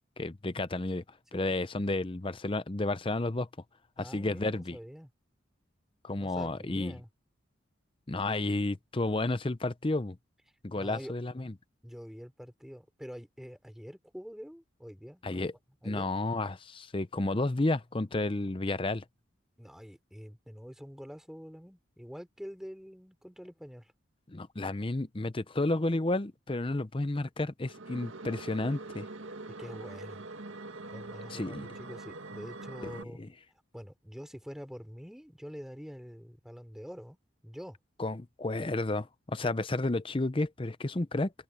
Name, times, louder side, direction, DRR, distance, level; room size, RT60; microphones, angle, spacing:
voice 1, 0.2-1.0 1.3-3.5 4.0-4.8 6.0-7.0 8.1-10.2 10.6-11.5 15.2-15.5 15.8-19.0 24.3-29.1 31.3-31.7 33.0-33.3 38.0-41.3, left 2 dB, 25° left, 0.7 m, -31 dB
voice 2, 4.0-5.1 6.2-7.1 10.8-11.1 11.8-15.5 15.8-16.2 19.6-23.9 29.6-30.3 30.9-33.2 33.7-37.2 37.4-37.8 39.4-39.5, equal, ahead, 3.5 m, -46 dB
sound 1, 27.7-33.0, right 2 dB, 85° right, 2.0 m, -43 dB
head